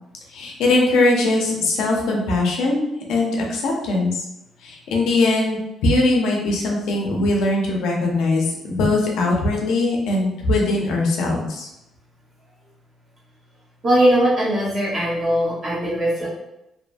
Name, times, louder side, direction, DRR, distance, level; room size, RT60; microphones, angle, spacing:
voice 1, 0.3-4.2 4.6-11.7, left 2 dB, 80° left, -1 dB, 0.6 m, -21 dB
voice 2, 13.8-16.3, right 1 dB, 40° right, -7 dB, 1.3 m, -20 dB
2.8 x 2.5 x 2.2 m, 0.88 s
cardioid pair, 130°, 0 cm